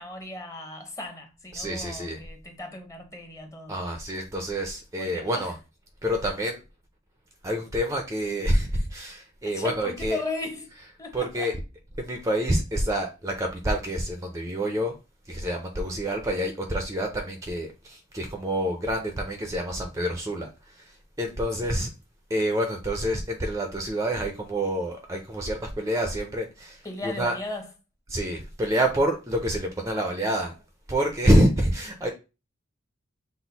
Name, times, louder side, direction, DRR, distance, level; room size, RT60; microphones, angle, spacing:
voice 1, 0.0-3.8 5.0-5.5 9.4-10.7 11.0-11.5 15.9-16.0 21.6-21.8 26.8-27.7, left 2 dB, 15° left, 0.9 m, -37 dB
voice 2, 1.5-2.2 3.7-5.5 6.0-6.6 7.4-10.2 11.1-11.5 12.0-14.9 15.3-20.5 21.2-21.9 22.3-26.8 27.0-27.3 28.1-30.5 30.9-32.1, right 1 dB, 15° right, 0.5 m, -27 dB
6.0 x 2.1 x 4.0 m
head